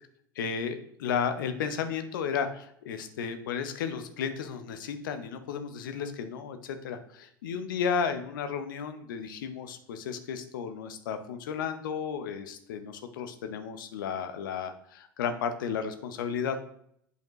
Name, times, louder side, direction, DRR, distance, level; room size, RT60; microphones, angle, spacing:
voice 1, 0.4-16.6, left 6 dB, 75° left, 9 dB, 0.7 m, -33 dB
8.0 x 5.0 x 3.1 m, 0.69 s
hypercardioid pair, 75°, 11 cm